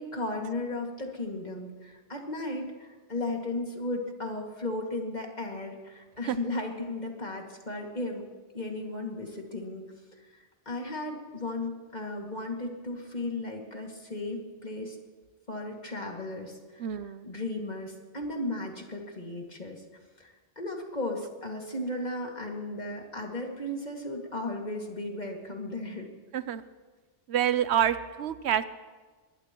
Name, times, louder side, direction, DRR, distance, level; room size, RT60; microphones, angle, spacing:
voice 1, 0.0-8.3 8.5-9.9 10.7-15.0 15.5-19.8 20.2-26.1, left 2 dB, 40° left, 1 dB, 2.3 m, -35 dB
voice 2, 16.8-17.3 26.3-26.6 27.3-28.6, right 10 dB, 85° right, 13 dB, 0.9 m, -27 dB
22.5 x 20.0 x 3.0 m, 1.4 s
omnidirectional pair, 1.1 m